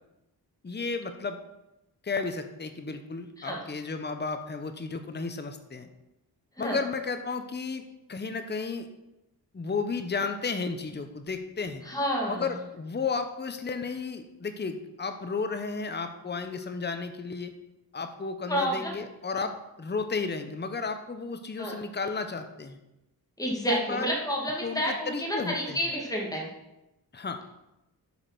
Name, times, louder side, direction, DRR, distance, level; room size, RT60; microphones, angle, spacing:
voice 1, 0.6-1.4 2.0-5.9 6.6-7.8 8.1-8.9 9.5-11.8 12.3-17.5 17.9-22.8 23.7-24.1 24.6-25.8 27.1-27.4, left 4 dB, 25° left, 7 dB, 0.8 m, -33 dB
voice 2, 11.9-12.4 18.5-19.0 21.6-21.8 23.4-26.5, equal, 10° left, -1 dB, 2.1 m, -29 dB
8.1 x 5.2 x 6.0 m, 0.91 s
wide cardioid pair, 80°, 40 cm